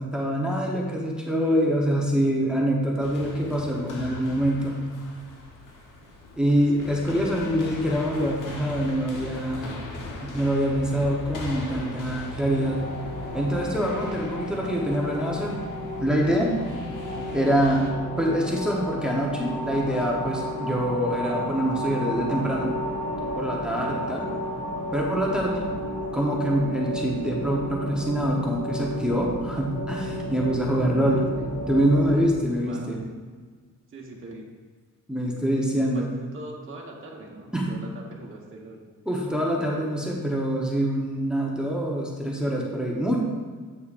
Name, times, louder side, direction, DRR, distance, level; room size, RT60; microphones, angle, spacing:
voice 1, 0.0-4.8 6.4-9.7 10.2-12.8 13.3-15.6 16.0-16.5 17.3-17.9 18.2-22.7 23.4-24.3 24.9-25.6 26.1-31.2 31.5-33.0 35.1-36.1 37.5-37.7 39.1-43.2, equal, 5° right, -3 dB, 0.9 m, -25 dB
sound 1, 3.0-17.9, left 3 dB, 85° left, 1.1 m, -40 dB
sound 2, 12.5-32.2, equal, 25° left, 1.6 m, -32 dB
voice 2, 30.9-31.5 32.6-33.0 33.9-34.5 35.9-38.8 39.1-39.3, right 2 dB, 40° right, -2 dB, 1.2 m, -43 dB
8.2 x 6.5 x 2.5 m, 1.5 s
wide cardioid pair, 125°, 31 cm